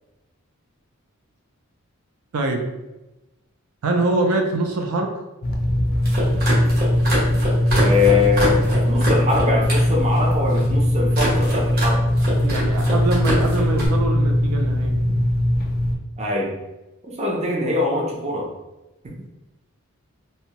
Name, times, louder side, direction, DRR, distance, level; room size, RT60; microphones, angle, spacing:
voice 1, 3.8-5.1 12.4-15.0, right 2 dB, 85° right, 3 dB, 0.4 m, -23 dB
sound 1, 5.4-15.9, left 1 dB, 40° left, 0.3 m, -20 dB
sound 2, 5.9-9.9 10.2-10.7 11.1-11.9 12.2-13.9, right 1 dB, 45° right, 0.9 m, -25 dB
voice 2, 7.8-12.1 16.2-16.6 17.0-18.5 19.0-19.3, left 3 dB, 30° right, -2 dB, 0.4 m, -23 dB
2.7 x 2.1 x 2.8 m, 1.0 s
head